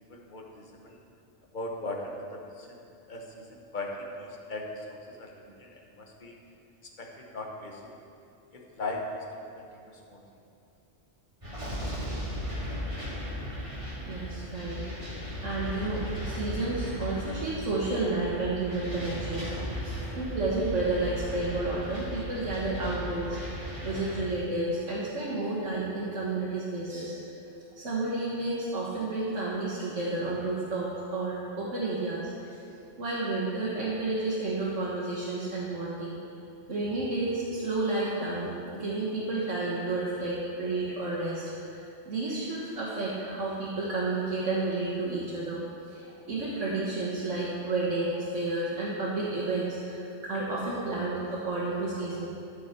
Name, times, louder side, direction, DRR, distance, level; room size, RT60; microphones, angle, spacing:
voice 1, 0.1-1.0 1.5-2.8 3.1-6.4 7.0-7.9 8.5-10.2 52.1-52.3, left 2 dB, 45° left, 0 dB, 1.2 m, -39 dB
sound 1, 11.4-24.2, equal, 25° right, 1.9 m, -36 dB
voice 2, 14.0-14.8 15.4-27.2 27.7-32.3 33.0-36.1 36.7-45.6 45.9-52.3, right 2 dB, 90° right, -8 dB, 1.7 m, -31 dB
13.0 x 6.6 x 4.3 m, 2.7 s
omnidirectional pair, 1.2 m